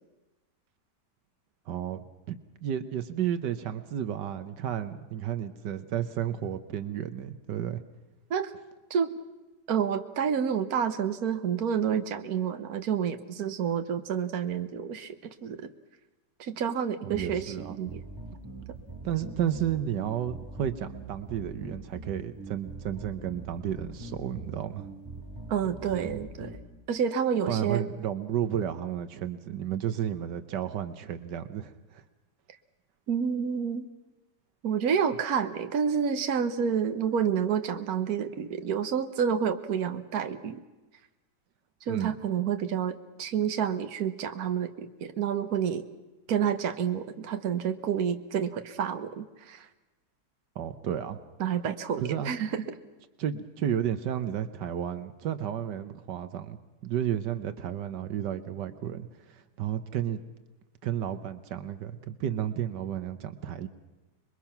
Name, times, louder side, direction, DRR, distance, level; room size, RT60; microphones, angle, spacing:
voice 1, 1.7-7.8 17.0-17.8 19.0-24.9 25.9-26.1 27.5-32.0 41.9-42.1 50.5-51.2 51.6-52.3 53.2-60.2 60.8-63.7, right 10 dB, 85° right, 11 dB, 1.6 m, -32 dB
voice 2, 9.7-15.7 16.4-18.0 25.5-26.6 26.9-27.8 33.1-33.9 34.6-40.6 41.9-45.9 46.3-49.7 51.4-52.8, right 7 dB, 60° right, 8 dB, 1.6 m, -29 dB
sound 1, 17.1-26.6, right 2 dB, 15° right, 3.6 m, -42 dB
27.0 x 22.0 x 5.9 m, 1.1 s
omnidirectional pair, 1.8 m